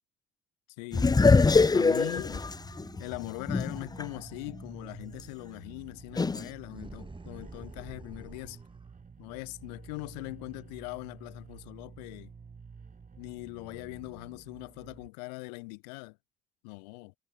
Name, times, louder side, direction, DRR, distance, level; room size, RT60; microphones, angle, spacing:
voice 1, 0.8-1.2 1.7-2.4 3.0-8.6 9.2-12.3 13.2-16.2 16.6-17.1, left 29 dB, 85° left, 1.7 m, -41 dB
sound 1, 0.9-4.0 4.5-4.6 6.2-6.5, left 4 dB, 20° left, 0.6 m, -23 dB
sound 2, 1.1-15.1, right 5 dB, 40° right, 2.6 m, -51 dB
sound 3, 6.7-8.9, right 3 dB, 25° right, 4.1 m, -47 dB
hypercardioid pair, 50°, 21 cm